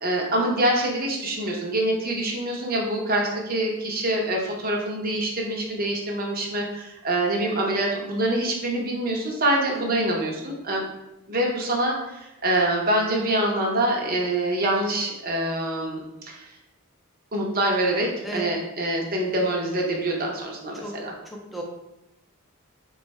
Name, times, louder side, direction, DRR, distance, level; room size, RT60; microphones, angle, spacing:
voice 1, 0.0-10.8 11.3-16.4 17.3-21.1, right 1 dB, 45° right, -1 dB, 0.7 m, -25 dB
voice 2, 21.3-21.6, right 1 dB, ahead, -1 dB, 0.4 m, -34 dB
3.6 x 2.3 x 4.1 m, 0.91 s
head